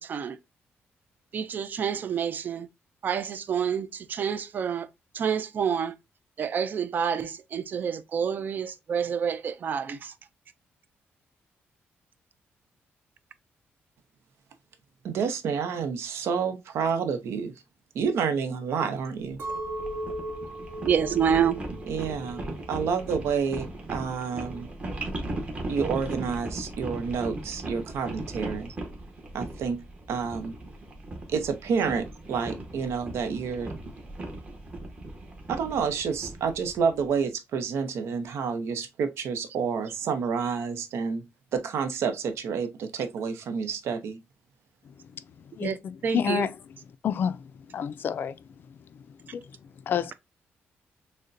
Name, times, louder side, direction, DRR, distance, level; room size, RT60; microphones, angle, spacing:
voice 1, 1.3-2.7 3.0-4.9 5.2-5.9 6.4-10.0 20.8-21.6 45.6-45.8 46.0-46.5, right 7 dB, 45° right, 0.4 m, -28 dB
voice 2, 15.0-17.5 17.9-19.4 21.9-24.7 25.7-28.7 29.3-30.5 31.3-33.7 35.5-41.2 41.5-44.2, right 6 dB, 80° right, 0.7 m, -29 dB
sound 1, 19.3-37.1, right 2 dB, 25° right, 1.0 m, -38 dB
Chink clink, 19.4-23.7 24.1-24.7, right 1 dB, 60° right, 1.1 m, -38 dB
voice 3, 45.6-46.6 47.0-47.4 47.7-48.3 49.3-49.4 49.9-50.1, left 8 dB, 50° left, 0.3 m, -28 dB
6.4 x 2.1 x 2.5 m
wide cardioid pair, 155°, 4 cm